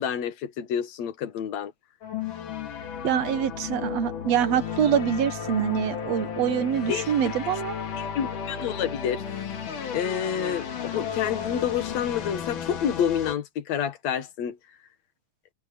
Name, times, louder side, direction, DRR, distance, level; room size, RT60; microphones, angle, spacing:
voice 1, 0.0-1.7 6.9-7.1 7.9-9.2 9.9-14.6, left 9 dB, 60° left, 2.7 m, -28 dB
sound 1, 2.0-13.4, left 7 dB, 75° left, 3.9 m, -34 dB
voice 2, 3.0-7.8, right 9 dB, 65° right, 2.1 m, -25 dB
omnidirectional pair, 3.6 m